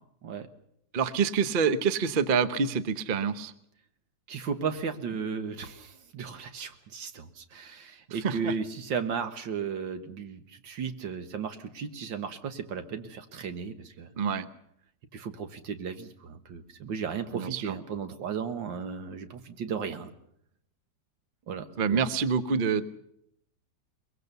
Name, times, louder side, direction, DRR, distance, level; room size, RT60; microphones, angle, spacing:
voice 1, 0.9-3.5 8.2-8.5 14.2-14.5 17.3-17.8 21.8-22.8, right 6 dB, 40° right, 13 dB, 0.8 m, -26 dB
voice 2, 4.3-14.1 15.1-20.1 21.5-22.0, right 6 dB, 85° right, 9 dB, 2.1 m, -35 dB
23.0 x 22.0 x 6.9 m, 0.73 s
omnidirectional pair, 2.0 m